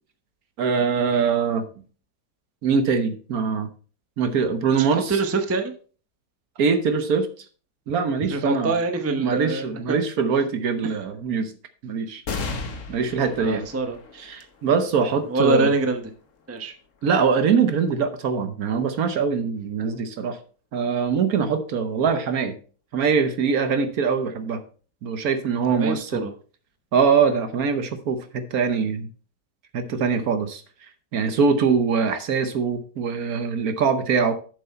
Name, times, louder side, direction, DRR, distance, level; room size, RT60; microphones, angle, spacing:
voice 1, 0.6-1.6 2.6-3.7 4.2-5.2 6.6-7.3 7.9-8.7 9.2-11.5 11.8-12.2 12.9-13.7 14.2-15.7 17.0-20.4 20.7-22.6 22.9-24.6 25.0-26.3 26.9-29.1 29.7-30.6 31.1-34.3, right 6 dB, 65° right, 9 dB, 1.3 m, -23 dB
voice 2, 4.8-5.7 8.3-10.0 13.4-14.3 15.3-16.0 16.5-16.7 25.8-26.3, right 3 dB, 15° right, 5 dB, 0.6 m, -25 dB
sound 1, 12.2-19.1 19.7-19.8 21.0-21.5, left 4 dB, 50° left, 1.4 m, -38 dB
7.5 x 6.9 x 4.3 m, 0.40 s
omnidirectional pair, 1.8 m